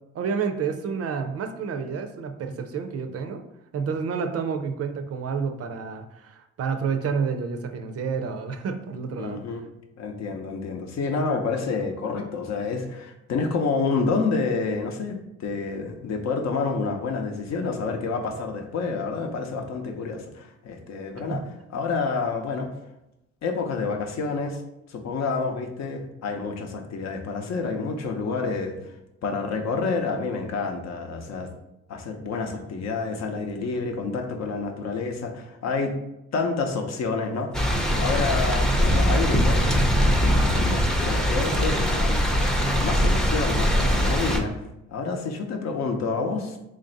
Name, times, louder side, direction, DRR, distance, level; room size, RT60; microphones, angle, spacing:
voice 1, 0.1-3.4 3.7-9.4 21.3-21.5, right 5 dB, 55° right, 6 dB, 0.5 m, -29 dB
voice 2, 9.2-9.6 10.0-21.4 21.7-22.7 23.4-24.6 24.9-28.8 29.2-31.5 31.9-36.0 36.3-37.5 37.9-44.6 44.9-46.6, left 4 dB, 60° left, 4 dB, 0.6 m, -28 dB
sound 1, 37.5-44.4, equal, ahead, 0.5 m, -22 dB
3.2 x 2.6 x 3.9 m, 0.90 s
cardioid pair, 90°, 30 cm